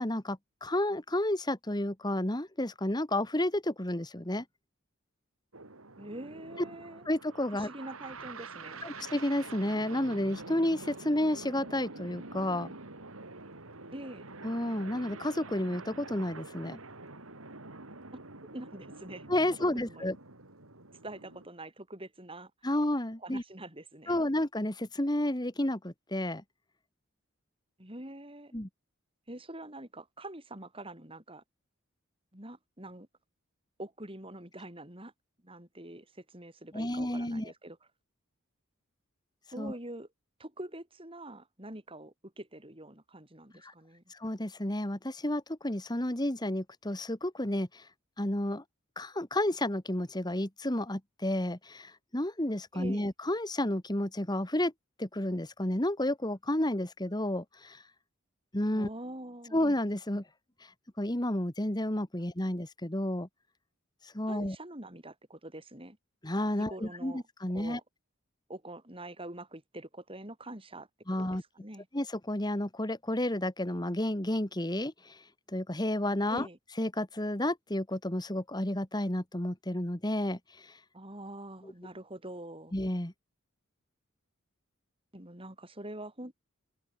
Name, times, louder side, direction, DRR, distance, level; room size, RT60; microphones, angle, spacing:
voice 1, 0.0-4.4 7.1-7.7 8.8-12.7 14.4-16.8 19.3-20.2 22.6-23.4 24.1-26.4 28.5-28.7 36.7-37.5 39.6-39.7 43.6-43.7 44.1-47.9 48.2-48.6 49.0-54.7 55.0-57.8 58.5-58.9 59.5-60.3 60.6-60.7 61.0-63.3 64.0-64.6 66.2-67.8 71.1-71.4 71.9-76.5 76.8-80.8 82.7-83.1, left 1 dB, 20° left, 1.9 m, -31 dB
sound 1, 5.5-21.5, right 3 dB, 90° right, 4.1 m, -46 dB
voice 2, 6.0-7.0 7.5-8.8 13.9-14.3 18.5-19.3 19.6-20.1 21.0-22.5 23.2-24.2 27.8-28.5 29.3-31.4 32.3-33.1 33.8-35.1 35.4-37.8 39.5-40.1 40.4-44.0 52.7-53.1 58.7-59.6 64.3-66.0 66.7-67.2 67.5-67.8 68.5-71.9 76.3-76.6 80.9-82.7 85.1-86.3, right 1 dB, 25° right, 6.6 m, -45 dB
head